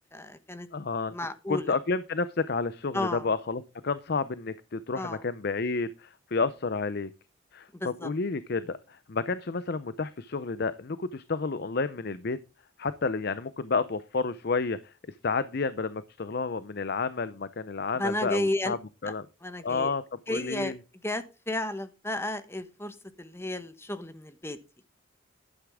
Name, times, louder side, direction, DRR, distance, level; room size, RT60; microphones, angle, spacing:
voice 1, 0.1-0.7 1.1-1.7 2.9-3.3 4.9-5.2 7.8-8.1 17.9-18.7 19.4-19.9 20.3-20.7 21.0-24.6, left 1 dB, 10° left, 11 dB, 1.1 m, -32 dB
voice 2, 0.7-1.1 1.5-7.1 7.5-12.4 12.8-14.9 15.2-18.8 19.0-19.2 19.6-20.0 20.3-20.8, left 4 dB, 50° left, 15 dB, 0.6 m, -30 dB
11.5 x 9.5 x 3.6 m, 0.30 s
head